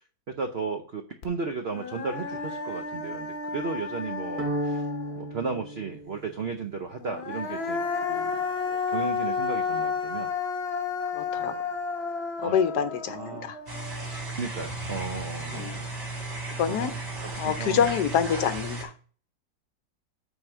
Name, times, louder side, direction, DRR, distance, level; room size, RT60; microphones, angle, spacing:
voice 1, 0.4-4.8 5.2-8.4 8.6-10.3 11.3-11.7 12.4-13.5 14.3-15.9 16.7-17.9, right 4 dB, 85° right, 5 dB, 0.5 m, -35 dB
Human voice, 1.2-1.3 1.7-5.3 7.0-14.3, left 5 dB, 50° left, 0.8 m, -32 dB
sound 1, 4.4-6.7, right 1 dB, 60° right, 1.3 m, -33 dB
voice 2, 11.1-11.5 12.4-13.6 15.5-15.8 16.6-16.9 17.4-18.9, left 8 dB, 70° left, 10 dB, 1.1 m, -26 dB
sound 2, 13.7-18.8, right 2 dB, 40° right, 2.7 m, -35 dB
8.2 x 3.7 x 5.8 m, 0.43 s
omnidirectional pair, 2.1 m